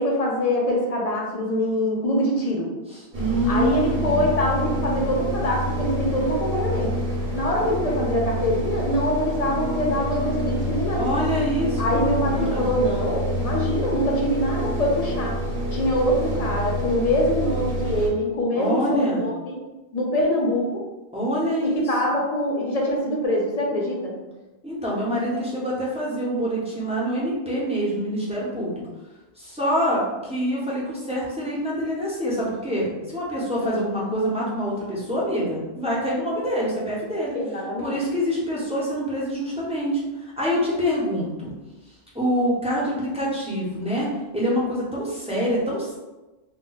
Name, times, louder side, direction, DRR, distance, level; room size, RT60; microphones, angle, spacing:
voice 1, 0.0-2.7 3.5-7.0 7.3-11.1 11.8-15.4 15.7-19.5 19.9-20.8 21.6-24.1 33.6-33.8 37.3-38.0, left 1 dB, 45° left, -2 dB, 0.5 m, -24 dB
voice 2, 2.9-4.3 10.9-12.7 18.5-19.2 21.1-21.8 24.6-28.8 29.4-37.4 37.8-41.5 42.1-46.0, equal, 10° right, -7 dB, 0.4 m, -26 dB
sound 1, 3.1-18.1, equal, 60° right, 0.9 m, -27 dB
2.2 x 2.1 x 3.8 m, 1.1 s
omnidirectional pair, 1.1 m